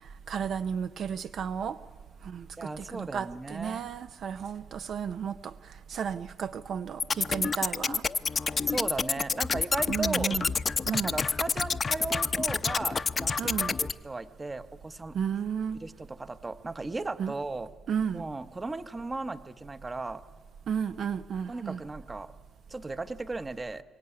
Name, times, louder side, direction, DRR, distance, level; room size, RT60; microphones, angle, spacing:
voice 1, 0.3-1.8 2.2-5.5 5.9-8.0 9.9-10.5 10.9-11.1 13.4-13.7 15.1-15.8 17.2-17.3 17.9-18.2 20.7-21.8, right 7 dB, 65° right, 0.6 m, -33 dB
voice 2, 2.6-3.9 8.7-10.3 10.9-15.2 15.8-17.7 18.1-20.2 21.5-22.3 22.7-23.8, right 3 dB, 25° right, 1.0 m, -36 dB
sound 1, 7.0-13.9, left 5 dB, 35° left, 0.7 m, -28 dB
23.0 x 17.5 x 9.8 m
cardioid pair, 90°, 0 cm